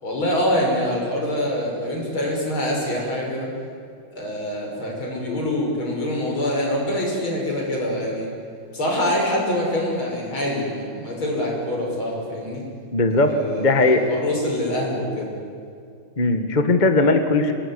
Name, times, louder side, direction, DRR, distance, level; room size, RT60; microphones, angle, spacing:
voice 1, 0.0-3.5 4.1-8.3 8.7-12.6 13.2-15.3, left 1 dB, 65° left, -1 dB, 7.0 m, -25 dB
voice 2, 12.9-14.0 16.2-17.5, left 2 dB, 25° left, 7 dB, 1.4 m, -18 dB
25.5 x 19.5 x 9.9 m, 2.4 s
omnidirectional pair, 2.4 m